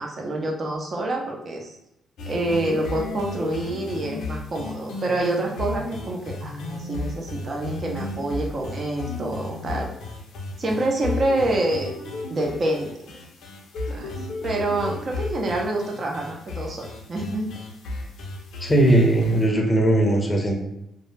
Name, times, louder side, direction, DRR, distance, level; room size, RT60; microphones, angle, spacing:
voice 1, 0.0-1.7 2.3-9.9 10.6-11.9 12.3-13.2 13.9-14.1 14.4-17.5, right 2 dB, 45° right, 0 dB, 0.6 m, -27 dB
sound 1, 2.2-19.4, left 3 dB, 75° left, 0.5 m, -33 dB
voice 2, 18.6-20.5, right 1 dB, 20° left, 1 dB, 0.6 m, -19 dB
2.2 x 2.0 x 3.1 m, 0.82 s
cardioid pair, 90°, 0 cm